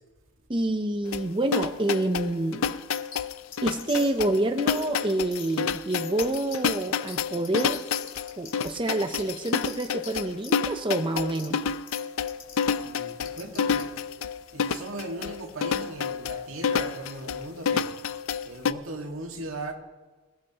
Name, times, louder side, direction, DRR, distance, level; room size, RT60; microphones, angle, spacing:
voice 1, 0.5-2.7 3.6-7.8 8.4-11.6, right 2 dB, 25° right, 0.6 m, -27 dB
sound 1, 1.1-18.7, left 6 dB, 75° left, 0.5 m, -29 dB
sound 2, 2.9-3.2 3.5-4.2 4.7-4.8 5.3-5.5 5.9-6.6 7.1-7.2 7.4-8.7 9.2-10.2 10.4-10.5 11.3-11.5 11.9-12.0 12.3-12.6 13.2-13.8, left 8 dB, 40° left, 2.4 m, -41 dB
voice 2, 12.8-13.9 14.5-17.9 18.4-19.7, right 2 dB, 75° right, 1.8 m, -38 dB
26.5 x 15.5 x 2.9 m
head